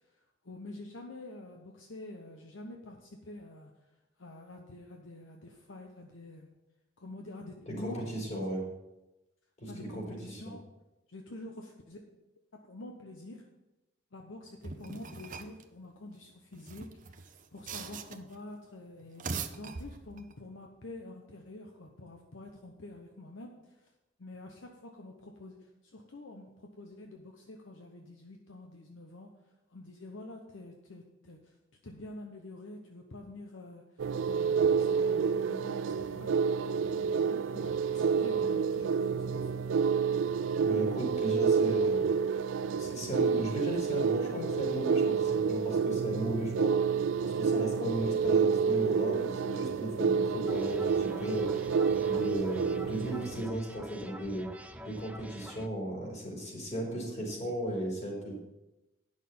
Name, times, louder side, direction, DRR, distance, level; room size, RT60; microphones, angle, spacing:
voice 1, 0.1-3.7 4.2-6.5 7.0-8.3 9.7-10.6 11.1-12.0 12.6-13.4 14.1-19.2 19.6-23.9 24.2-29.3 29.7-31.5 31.8-36.3 36.8-39.5 47.5-47.8 52.8-53.0, left 2 dB, 75° left, 2 dB, 0.9 m, -47 dB
voice 2, 7.7-8.6 9.6-10.4 40.6-42.0 42.8-46.7 47.2-51.5 52.1-54.5 54.8-58.3, right 1 dB, 40° left, -3 dB, 3.8 m, -36 dB
sound 1, 14.6-15.6 16.5-18.4 19.0-20.3, right 5 dB, 45° right, 0.7 m, -41 dB
sound 2, 34.0-53.4, right 6 dB, 70° right, 0.4 m, -29 dB
sound 3, 50.5-55.7, right 1 dB, 5° right, 0.5 m, -47 dB
9.5 x 6.4 x 5.5 m, 0.98 s
head